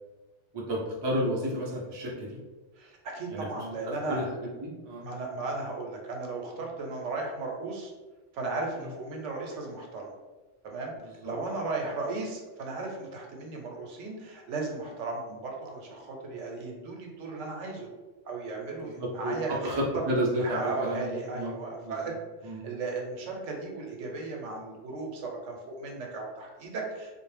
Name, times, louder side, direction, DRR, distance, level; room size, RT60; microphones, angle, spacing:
voice 1, 0.5-2.4 3.3-3.5 4.1-5.0 11.2-11.3 16.3-16.6 18.8-19.3 19.6-21.5 21.8-22.0 22.4-22.6, equal, 40° right, -3 dB, 0.3 m, -31 dB
voice 2, 2.8-4.2 5.0-7.9 8.3-10.1 10.6-10.9 11.2-17.9 18.2-19.7 20.4-22.1 22.4-27.2, right 3 dB, 80° right, 0 dB, 0.9 m, -36 dB
2.5 x 2.0 x 3.1 m, 1.2 s
omnidirectional pair, 1.2 m